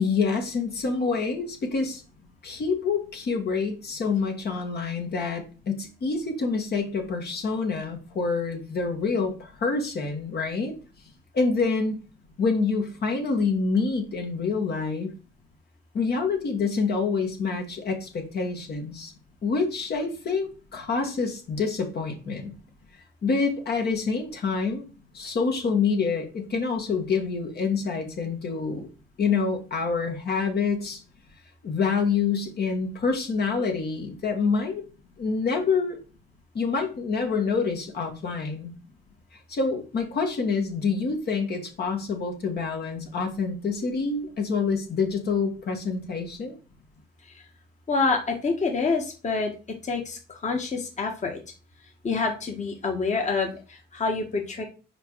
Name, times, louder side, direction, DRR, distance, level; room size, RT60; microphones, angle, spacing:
voice 1, 0.0-2.0 2.4-10.8 11.3-12.0 12.4-15.1 15.9-19.1 19.4-22.6 23.2-24.8 25.1-28.9 29.2-31.0 31.6-34.8 35.2-36.0 36.5-38.7 39.5-46.6, left 4 dB, 55° left, 2 dB, 1.8 m, -27 dB
voice 2, 47.9-49.5 49.8-51.4 52.0-54.6, left 4 dB, 35° left, 2 dB, 1.7 m, -27 dB
5.0 x 4.9 x 4.7 m, 0.34 s
cardioid pair, 90°, 20 cm